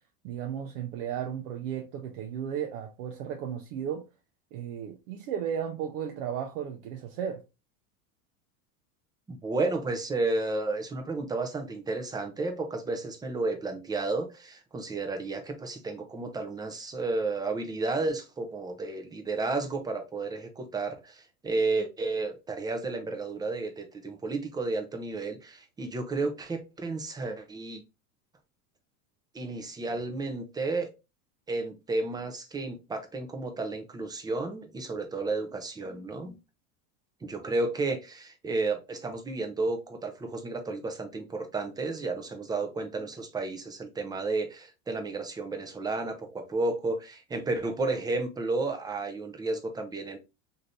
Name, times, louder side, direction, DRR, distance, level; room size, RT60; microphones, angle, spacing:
voice 1, 0.2-4.1 4.5-7.4, right 8 dB, 70° right, 0.7 m, -34 dB
voice 2, 9.3-27.8 29.3-30.9 31.5-36.4 37.2-50.2, right 3 dB, 10° right, 0.5 m, -32 dB
3.1 x 2.7 x 2.5 m
supercardioid pair, 115°, 43 cm